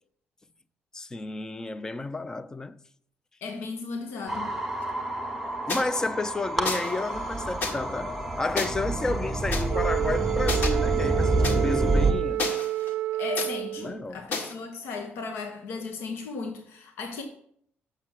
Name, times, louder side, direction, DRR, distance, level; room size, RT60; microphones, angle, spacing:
voice 1, 0.9-2.8 5.7-12.4 13.8-14.2, left 2 dB, 15° left, 0.4 m, -31 dB
voice 2, 3.4-4.5 13.1-17.2, left 4 dB, 80° left, 1.1 m, -36 dB
sound 1, 4.3-12.1, right 2 dB, ahead, 1.0 m, -28 dB
sound 2, 5.7-5.8 6.6-7.0 7.6-7.7 8.6-8.7 9.5-9.6 10.5-10.7 11.4-11.5 12.4-12.9 13.4-13.5 14.3-14.5, left 3 dB, 60° left, 1.6 m, -30 dB
Wind instrument woodwind instrument, 9.7-14.1, right 15 dB, 70° right, 0.3 m, -29 dB
6.6 x 6.0 x 7.2 m
cardioid pair, 140°, 4 cm